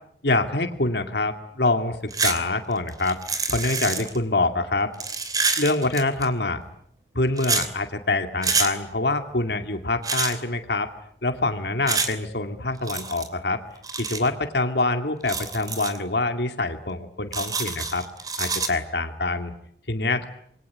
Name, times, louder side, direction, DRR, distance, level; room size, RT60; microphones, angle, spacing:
voice 1, 0.2-3.2 3.5-4.9 5.6-6.6 7.1-10.9 11.2-13.6 14.0-18.0 18.4-19.5 19.9-20.3, left 2 dB, 70° left, 6 dB, 2.3 m, -25 dB
sound 1, 2.1-2.4 2.7-4.2 4.9-6.3 7.4-7.7 8.4-8.7 10.0-10.4 11.9-12.1 12.8-13.3 13.8-14.3 15.2-16.0 17.3-18.7, right 4 dB, 20° right, 2.8 m, -27 dB
27.0 x 22.5 x 9.5 m, 0.71 s
head